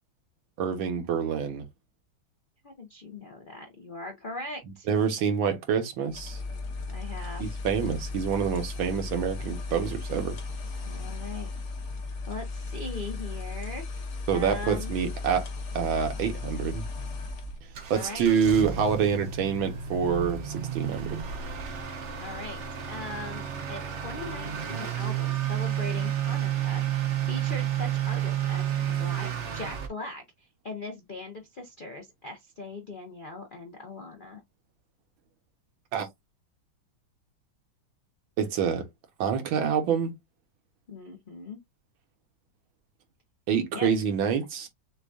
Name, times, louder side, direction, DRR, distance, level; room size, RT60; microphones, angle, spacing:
voice 1, 0.6-1.6 4.9-6.4 7.4-10.4 14.3-15.5 15.8-16.8 17.9-21.2 35.9-36.1 38.4-38.8 39.2-40.1 43.5-44.7, right 7 dB, 85° right, 1.8 m, -27 dB
voice 2, 2.6-4.9 6.9-7.4 10.9-11.5 12.3-13.8 14.3-14.9 17.9-18.3 22.2-22.6 22.9-23.4 23.7-34.4 40.9-41.6 43.7-43.9, left 2 dB, 75° left, 0.4 m, -40 dB
sound 1, 6.1-17.6, left 3 dB, 50° left, 1.0 m, -36 dB
Motor vehicle (road) / Accelerating revving vroom, 17.2-29.9, right 10 dB, 60° right, 0.7 m, -31 dB
6.6 x 2.3 x 2.6 m
omnidirectional pair, 2.2 m